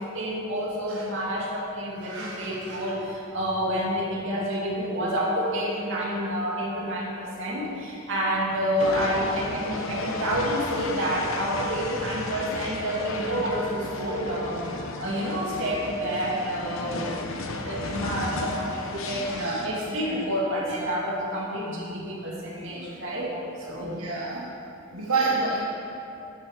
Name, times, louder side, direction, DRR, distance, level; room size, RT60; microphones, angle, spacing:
voice 1, 0.0-24.0 24.9-25.0, equal, 60° right, -4 dB, 2.4 m, -29 dB
sound 1, 8.8-19.7, left 2 dB, 65° left, 0.9 m, -34 dB
voice 2, 19.1-19.6 20.1-20.2 23.8-24.5 24.9-25.6, right 3 dB, 85° right, -4 dB, 1.2 m, -28 dB
12.5 x 7.3 x 4.8 m, 3.0 s
head